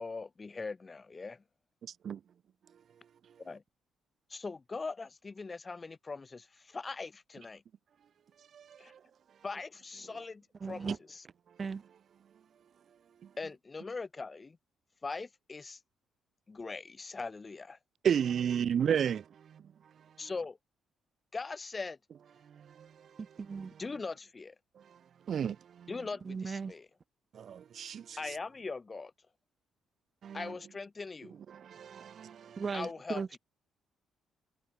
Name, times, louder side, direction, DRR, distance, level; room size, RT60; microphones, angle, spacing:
voice 1, 0.0-1.4 3.4-3.6 4.3-7.6 8.8-8.9 9.4-11.2 13.4-14.6 15.0-15.8 16.5-17.8 20.2-20.6 21.3-22.0 23.8-24.5 25.9-26.9 28.2-29.1 30.3-31.3 32.7-33.2, left 4 dB, 30° left, 4.9 m, -41 dB
voice 2, 8.4-9.0 13.2-13.3 18.0-19.9 22.4-23.2 24.8-25.0 25.3-25.6 27.3-28.4 30.2-30.5 31.5-32.6, right 8 dB, 60° right, 0.6 m, -34 dB
voice 3, 10.6-11.0 11.6-11.8 23.2-23.7 25.3-25.5 26.2-26.7 32.6-33.4, right 5 dB, 35° right, 2.0 m, -37 dB
cardioid pair, 90°, 0 cm